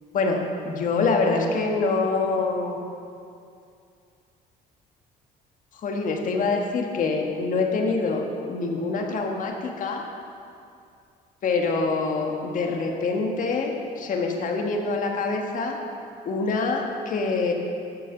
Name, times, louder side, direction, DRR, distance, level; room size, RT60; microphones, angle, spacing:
voice 1, 0.1-2.8 5.7-10.0 11.4-15.8 16.2-17.5, left 3 dB, 50° left, 2 dB, 1.5 m, -25 dB
11.5 x 6.6 x 6.7 m, 2.4 s
cardioid pair, 110°, 17 cm